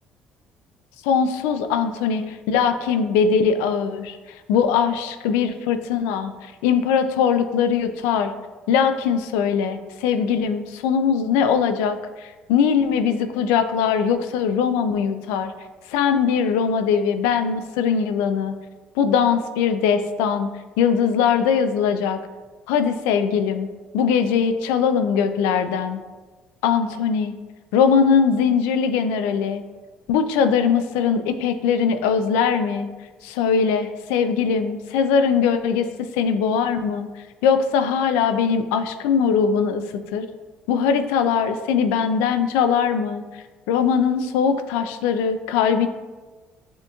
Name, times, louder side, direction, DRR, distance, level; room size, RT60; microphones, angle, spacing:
voice 1, 1.0-4.2 4.5-8.3 8.7-15.5 15.9-18.5 19.0-20.5 20.8-22.2 22.7-23.7 23.9-26.0 26.6-27.3 27.7-29.6 30.1-32.9 33.2-37.1 37.4-39.8 40.1-40.3 40.7-45.9, left 6 dB, 90° left, 9 dB, 0.3 m, -21 dB
6.8 x 2.9 x 2.3 m, 1.3 s
supercardioid pair, 85°, 4 cm